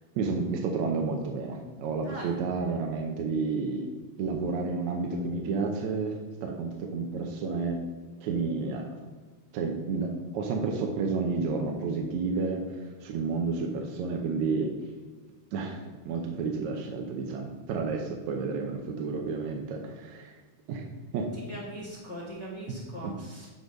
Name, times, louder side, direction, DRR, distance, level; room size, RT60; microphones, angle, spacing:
voice 1, 0.2-3.9 4.2-7.8 8.2-8.9 9.5-14.7 15.5-20.4 20.7-20.9 21.1-21.6 22.7-22.8 23.0-23.1, right 4 dB, 75° right, 1 dB, 2.0 m, -31 dB
voice 2, 2.0-2.3 21.3-23.5, equal, 40° left, -7 dB, 1.1 m, -41 dB
9.8 x 4.0 x 5.2 m, 1.4 s
omnidirectional pair, 3.6 m